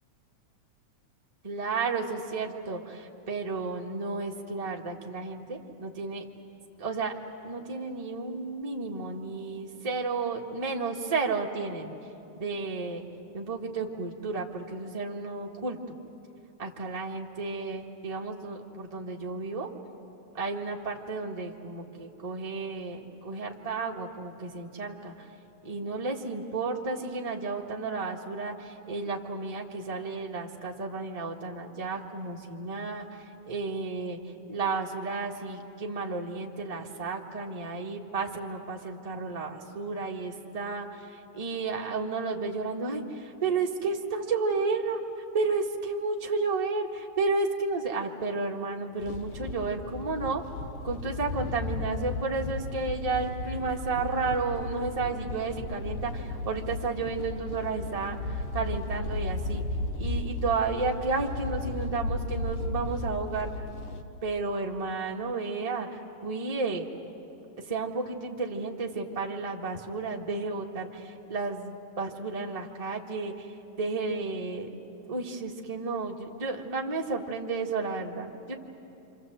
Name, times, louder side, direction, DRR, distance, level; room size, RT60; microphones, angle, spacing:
voice 1, 1.4-6.2 6.8-7.1 7.4-11.9 12.3-13.0 13.3-15.8 16.6-19.7 20.3-25.3 25.6-34.2 34.5-45.0 45.3-50.4 50.8-59.6 60.0-63.5 64.2-66.9 67.7-74.7 75.1-78.5, right 4 dB, 25° right, -1 dB, 0.9 m, -32 dB
sound 1, 49.0-64.0, left 2 dB, 60° left, 2.0 m, -35 dB
27.0 x 26.0 x 7.9 m, 2.9 s
omnidirectional pair, 3.5 m